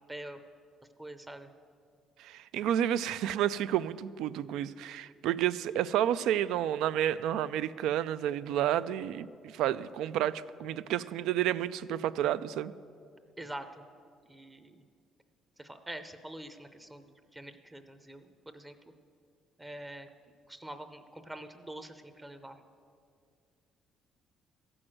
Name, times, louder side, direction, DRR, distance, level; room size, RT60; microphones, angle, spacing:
voice 1, 0.1-0.4 1.0-1.5 13.4-13.8 14.3-14.8 15.6-17.0 17.3-18.8 19.6-20.1 20.5-22.6, right 1 dB, 10° right, 8 dB, 0.6 m, -45 dB
voice 2, 2.2-12.7, right 11 dB, 85° right, 15 dB, 0.3 m, -30 dB
15.0 x 6.2 x 7.6 m, 2.2 s
cardioid pair, 165°, 0 cm